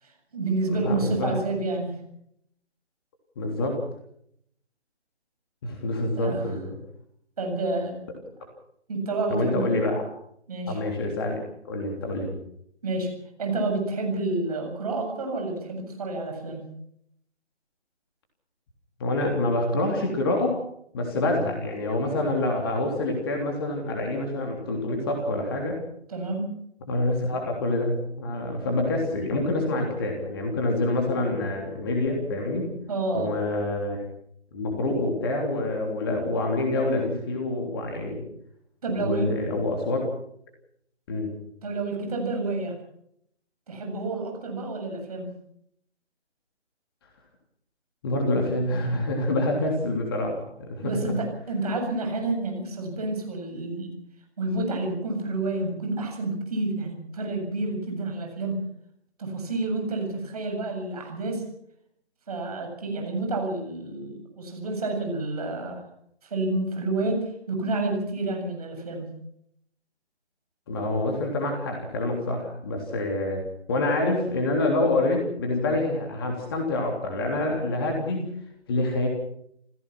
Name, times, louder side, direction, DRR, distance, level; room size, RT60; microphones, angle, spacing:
voice 1, 0.0-2.0 6.2-6.4 7.4-7.9 8.9-9.6 10.5-10.8 12.8-13.1 13.4-16.6 26.1-26.5 32.9-33.3 38.8-39.3 41.6-42.7 43.7-45.3 50.8-53.9 54.4-58.6 59.2-61.4 62.3-65.8 66.2-69.1, right 2 dB, 35° right, 2 dB, 7.8 m, -29 dB
voice 2, 0.7-1.4 3.4-3.8 5.6-6.8 9.3-10.0 10.7-11.4 11.6-12.3 19.0-20.6 20.9-25.8 26.9-32.7 33.1-34.0 34.5-38.2 39.0-40.0 41.1-41.3 48.0-51.2 70.7-73.4 73.7-78.3 78.7-79.1, left 2 dB, 20° left, 1 dB, 3.3 m, -26 dB
28.5 x 16.5 x 6.1 m, 0.71 s
figure-of-eight pair, 150°, 34 cm